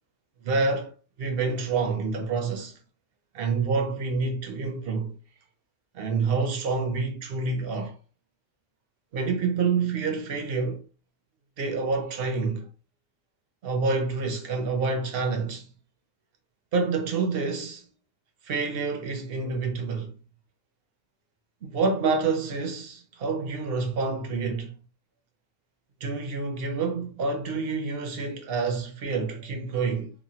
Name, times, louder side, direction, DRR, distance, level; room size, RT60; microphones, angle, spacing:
voice 1, 0.4-2.7 3.3-5.1 5.9-7.9 9.1-10.8 11.6-12.7 13.6-15.7 16.7-17.8 18.5-20.1 21.6-24.7 26.0-30.1, right 4 dB, 60° right, 0.7 m, -28 dB
3.0 x 2.2 x 2.7 m
omnidirectional pair, 1.4 m